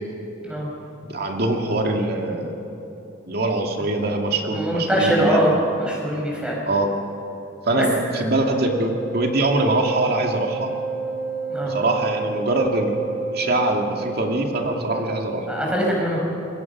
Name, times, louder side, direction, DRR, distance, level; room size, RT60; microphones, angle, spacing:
voice 1, 1.0-2.6 3.3-5.6 6.7-6.9 7.7-10.7 11.6-15.5, right 2 dB, 50° right, 2 dB, 2.3 m, -23 dB
voice 2, 4.5-5.5 5.8-6.5 8.1-8.2 11.5-11.8 15.5-16.2, right 1 dB, 5° right, -3 dB, 6.4 m, -22 dB
Wind instrument woodwind instrument, 8.0-15.0, right 4 dB, 55° left, 3.8 m, -30 dB
26.5 x 22.5 x 6.1 m, 3.0 s
head